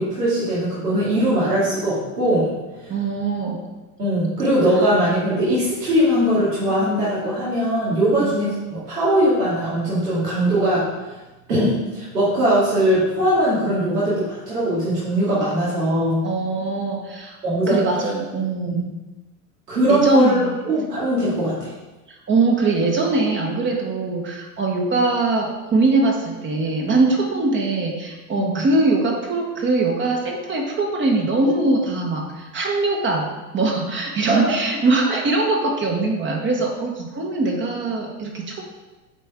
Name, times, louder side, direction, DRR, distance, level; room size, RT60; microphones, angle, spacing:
voice 1, 0.0-2.5 2.8-2.9 4.0-10.8 11.5-16.2 17.4-18.1 18.7-18.8 19.7-20.4 20.7-21.7 28.3-28.6 34.3-34.5, right 1 dB, 90° right, -9 dB, 2.3 m, -20 dB
voice 2, 2.9-3.6 4.7-4.9 8.2-8.3 16.2-17.4 17.7-18.8 19.9-20.5 22.1-33.3 33.5-38.6, right 3 dB, 25° right, 1 dB, 1.1 m, -22 dB
8.5 x 4.4 x 3.6 m, 1.1 s
hypercardioid pair, 95°, 46 cm